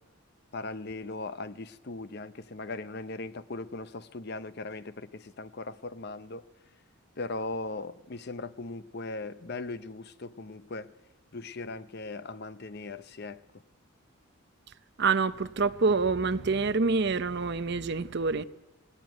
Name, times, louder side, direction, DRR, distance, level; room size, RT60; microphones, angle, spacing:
voice 1, 0.5-6.4 7.2-10.9 11.3-13.6, left 3 dB, 45° left, 0.7 m, -39 dB
voice 2, 15.0-18.4, right 4 dB, 50° right, 0.7 m, -26 dB
19.0 x 17.0 x 9.2 m
head